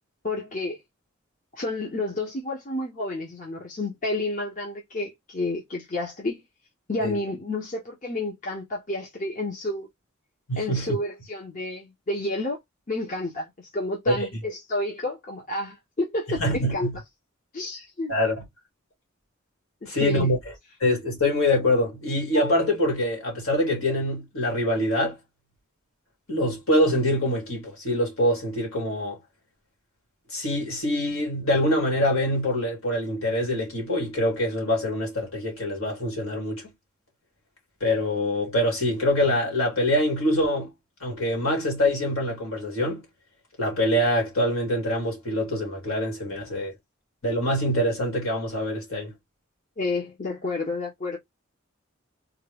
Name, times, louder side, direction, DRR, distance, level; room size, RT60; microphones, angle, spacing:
voice 1, 0.2-0.8 1.6-6.4 6.9-9.9 10.6-12.6 12.9-16.9 17.5-18.1 19.8-20.3 49.8-51.2, left 2 dB, 35° left, 0.9 m, -30 dB
voice 2, 10.5-11.0 14.1-14.3 16.3-17.0 18.1-18.4 19.9-20.4 20.8-25.2 26.3-29.2 30.3-36.6 37.8-40.7 41.0-43.0 43.6-46.7 47.2-49.1, left 1 dB, 75° left, 2.2 m, -24 dB
3.6 x 2.3 x 3.3 m
head